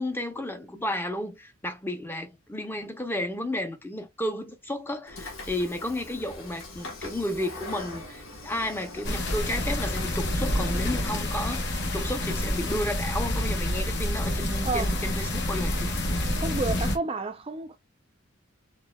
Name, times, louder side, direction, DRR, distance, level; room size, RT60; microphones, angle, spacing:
voice 1, 0.0-16.0, left 1 dB, 10° left, 0.6 m, -32 dB
Train / Sliding door, 5.1-10.1, left 2 dB, 75° left, 1.2 m, -41 dB
sound 1, 9.0-17.0, left 1 dB, 55° left, 0.9 m, -28 dB
voice 2, 14.6-15.0 16.4-17.8, right 3 dB, 25° right, 0.5 m, -30 dB
4.5 x 3.1 x 2.2 m
head